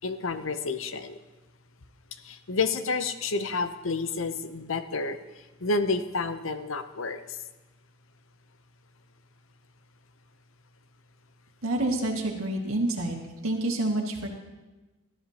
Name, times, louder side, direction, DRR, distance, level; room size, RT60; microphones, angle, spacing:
voice 1, 0.0-1.2 2.2-5.2 5.6-7.4, left 3 dB, 70° left, 10 dB, 0.8 m, -30 dB
voice 2, 11.6-13.2 13.4-14.3, right 1 dB, 85° right, 1 dB, 2.1 m, -28 dB
19.5 x 13.5 x 2.9 m, 1.2 s
head